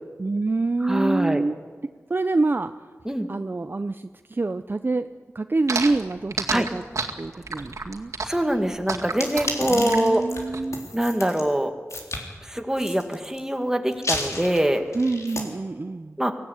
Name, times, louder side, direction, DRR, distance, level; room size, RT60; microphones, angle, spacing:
voice 1, 0.2-1.6 2.1-2.7 3.3-5.1 5.3-6.8 7.2-8.1 9.7-10.9 14.9-16.2, right 3 dB, 40° right, 9 dB, 0.6 m, -26 dB
voice 2, 0.8-1.4 3.1-3.3 6.5-6.7 8.2-10.2 10.9-11.7 12.4-14.9 16.2-16.3, right 1 dB, 10° right, 5 dB, 2.0 m, -24 dB
sound 1, 5.7-10.6, right 4 dB, 80° right, 2.2 m, -30 dB
sound 2, 9.1-11.4 11.9-12.2 12.8-13.4 13.9-15.4, left 2 dB, 75° left, 3.7 m, -31 dB
24.0 x 16.5 x 9.5 m, 1.5 s
wide cardioid pair, 80°, 5 cm